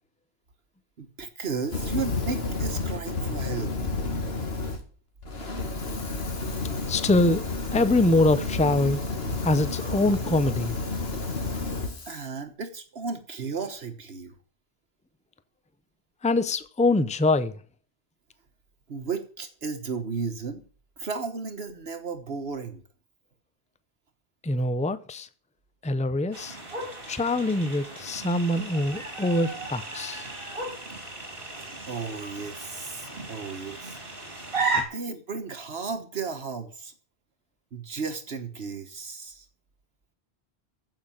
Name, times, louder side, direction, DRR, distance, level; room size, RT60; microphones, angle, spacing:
voice 1, 1.0-3.7 9.8-10.1 12.1-14.4 18.9-20.6 21.0-22.8 31.9-34.0 34.7-36.9 37.7-39.5, right 5 dB, 75° right, 1.6 m, -34 dB
Fire, 1.6-4.8 5.2-12.3, left 3 dB, 75° left, 2.3 m, -31 dB
voice 2, 6.9-7.5 7.7-9.0 9.4-10.8 16.2-17.6 24.4-25.3 25.8-26.6 27.1-30.3 34.8-34.9, left 2 dB, 10° left, 0.6 m, -24 dB
sound 1, 26.3-34.8, right 3 dB, 60° right, 4.3 m, -35 dB
15.5 x 5.9 x 8.9 m
omnidirectional pair, 1.1 m